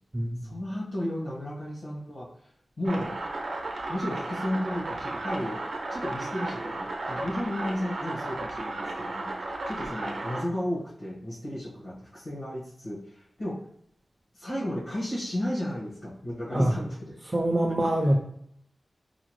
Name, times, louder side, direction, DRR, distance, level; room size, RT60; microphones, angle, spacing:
voice 1, 0.4-2.3 2.8-3.1 3.9-5.6 5.9-9.3 9.7-13.6 14.3-17.1, left 1 dB, 85° left, -7 dB, 1.3 m, -33 dB
sound 1, 2.8-10.4, right 2 dB, 90° right, 0.6 m, -34 dB
voice 2, 17.3-18.2, right 1 dB, 30° right, -1 dB, 0.4 m, -24 dB
4.8 x 2.1 x 3.0 m, 0.69 s
wide cardioid pair, 115°, 0 cm